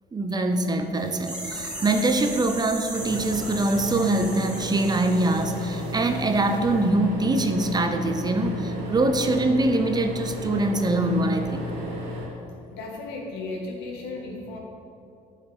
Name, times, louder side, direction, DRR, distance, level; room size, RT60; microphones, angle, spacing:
voice 1, 0.1-11.7, right 2 dB, 25° right, 6 dB, 0.7 m, -24 dB
sound 1, 0.9-6.6 6.8-6.9, right 1 dB, 5° right, 1.7 m, -38 dB
sound 2, 2.9-12.3, left 2 dB, 85° right, 2.2 m, -34 dB
voice 2, 12.7-14.6, left 3 dB, 90° left, 1 dB, 1.6 m, -35 dB
10.5 x 5.8 x 5.0 m, 2.5 s
cardioid pair, 110°, 17 cm